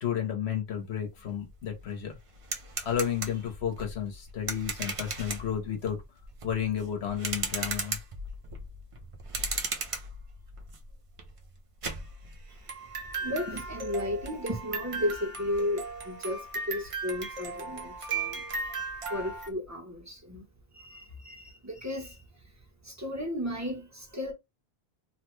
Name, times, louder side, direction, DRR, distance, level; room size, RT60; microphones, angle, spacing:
voice 1, 0.0-2.2 2.8-6.0 6.4-8.0, left 9 dB, 85° left, 1.2 m, -32 dB
sound 1, 1.1-1.2 1.5-19.5, right 3 dB, 40° right, 0.5 m, -37 dB
voice 2, 12.5-18.4 19.1-20.5 20.7-22.2 22.8-24.3, left 1 dB, 15° right, 0.9 m, -34 dB
3.2 x 2.2 x 3.1 m
omnidirectional pair, 1.1 m